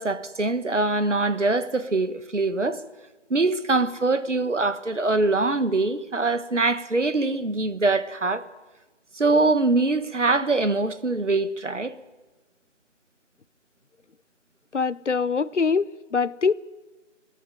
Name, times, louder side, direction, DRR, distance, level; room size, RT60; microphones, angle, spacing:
voice 1, 0.0-2.8 3.3-8.4 9.1-11.9, right 3 dB, 70° right, 1.5 m, -23 dB
voice 2, 14.7-16.5, left 5 dB, 70° left, 0.7 m, -23 dB
26.5 x 10.0 x 9.9 m
figure-of-eight pair, 165°, 37 cm